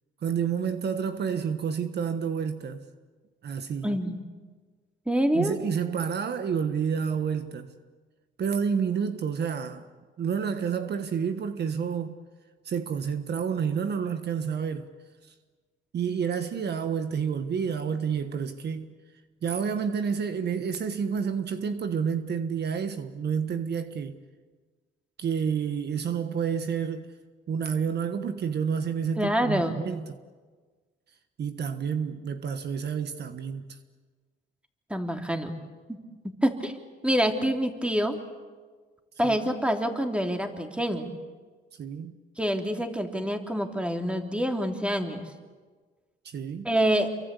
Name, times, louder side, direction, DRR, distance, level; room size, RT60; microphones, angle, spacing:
voice 1, 0.2-2.8 3.4-4.0 5.3-7.7 8.4-9.8 10.2-12.2 12.6-14.9 15.2-15.3 15.9-18.9 19.4-24.2 25.2-27.1 27.5-30.2 31.4-33.8 39.2-39.4 41.7-42.2 46.2-46.7, right 7 dB, 55° right, 1.4 m, -29 dB
voice 2, 3.8-4.2 5.1-5.6 29.2-29.8 34.9-35.5 36.4-36.7 37.0-38.2 39.2-41.1 42.4-45.2 46.6-47.1, equal, 5° right, 3.1 m, -26 dB
28.0 x 23.5 x 8.4 m
cardioid pair, 90°, 20 cm